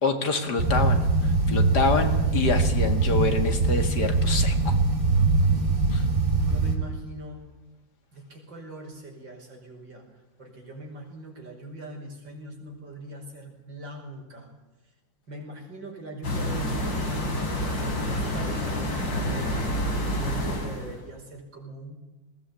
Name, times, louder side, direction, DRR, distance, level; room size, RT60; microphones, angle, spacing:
voice 1, 0.0-4.8 5.9-6.1, left 4 dB, 60° left, 7 dB, 2.6 m, -27 dB
sound 1, 0.6-6.8, right 3 dB, 45° right, 3.4 m, -22 dB
voice 2, 6.3-7.4 8.1-10.1 10.4-14.5 15.3-19.7 20.2-22.0, right 1 dB, 75° right, 1 dB, 5.8 m, -41 dB
sound 2, 16.2-21.0, equal, 80° left, 4.7 m, -28 dB
20.0 x 18.0 x 8.5 m, 1.1 s
omnidirectional pair, 2.0 m